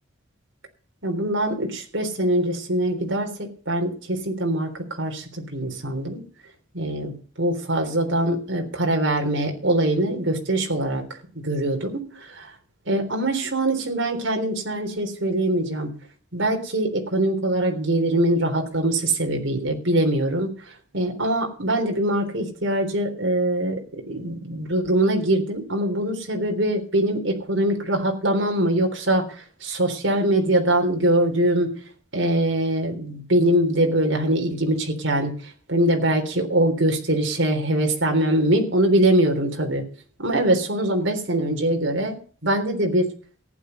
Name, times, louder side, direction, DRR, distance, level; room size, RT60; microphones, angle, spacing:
voice 1, 1.0-6.2 6.7-7.1 7.4-11.0 11.4-12.5 12.9-15.9 16.3-20.5 20.9-31.7 32.1-35.3 35.7-39.8 40.2-42.2 42.4-43.1, right 1 dB, 70° right, 3 dB, 3.7 m, -23 dB
15.0 x 10.5 x 5.3 m, 0.41 s
head